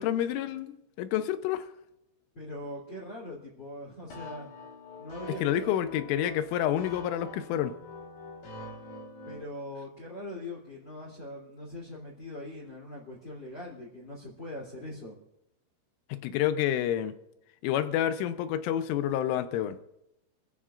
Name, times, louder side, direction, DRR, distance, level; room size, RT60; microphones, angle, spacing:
voice 1, 0.0-1.7 5.4-7.8 16.1-17.1 17.6-19.8, left 11 dB, 85° left, 3.3 m, -29 dB
voice 2, 2.3-4.5 5.0-5.7 9.3-15.2, left 1 dB, 25° left, 3.0 m, -41 dB
sound 1, 4.1-9.4, left 2 dB, 55° left, 5.5 m, -44 dB
28.5 x 15.0 x 2.5 m
omnidirectional pair, 5.6 m